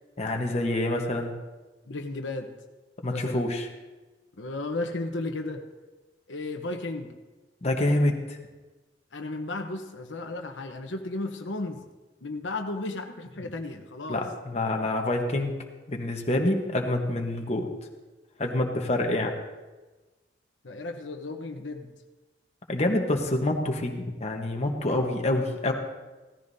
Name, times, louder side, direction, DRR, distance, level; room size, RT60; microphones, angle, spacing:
voice 1, 0.2-1.3 3.0-3.7 7.6-8.4 14.1-15.5 15.9-17.7 18.4-19.3 22.7-25.7, left 1 dB, 35° left, 2 dB, 1.2 m, -27 dB
voice 2, 1.9-2.5 3.1-3.5 4.4-5.6 6.3-7.1 9.1-11.8 12.2-14.2 20.6-21.9, left 2 dB, 85° left, 4 dB, 1.0 m, -34 dB
16.5 x 14.0 x 2.8 m, 1.2 s
head